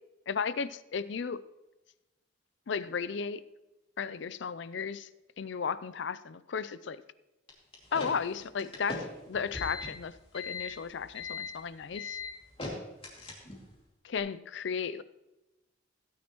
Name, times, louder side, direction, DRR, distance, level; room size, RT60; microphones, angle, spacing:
voice 1, 0.3-1.4 2.7-3.4 4.0-5.1 5.4-7.0 7.9-12.2 14.0-15.0, left 6 dB, 60° left, 16 dB, 0.4 m, -34 dB
sound 1, 7.5-13.7, left 3 dB, 25° left, 2.4 m, -40 dB
16.5 x 9.5 x 3.0 m, 1.0 s
head